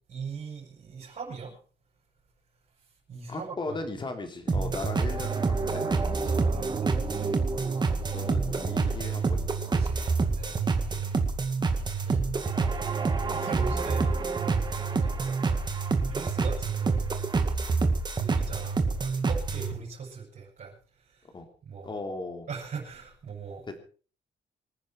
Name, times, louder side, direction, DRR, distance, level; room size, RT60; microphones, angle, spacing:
voice 1, 0.1-1.6 3.1-3.8 5.2-5.4 6.3-8.3 9.7-11.2 11.8-12.2 13.3-14.0 15.0-15.6 16.1-17.1 18.1-21.3 21.6-21.9 22.5-23.6, right 5 dB, 50° right, -4 dB, 7.4 m, -40 dB
voice 2, 3.3-6.4 7.8-9.6 10.8-10.9 17.8-17.9 21.3-21.5 21.8-22.5 23.7-23.8, left 3 dB, 25° left, 5 dB, 3.4 m, -38 dB
sound 1, 4.5-19.7, right 4 dB, 25° right, 2.1 m, -27 dB
26.0 x 10.0 x 4.6 m, 0.40 s
wide cardioid pair, 175°, 18 cm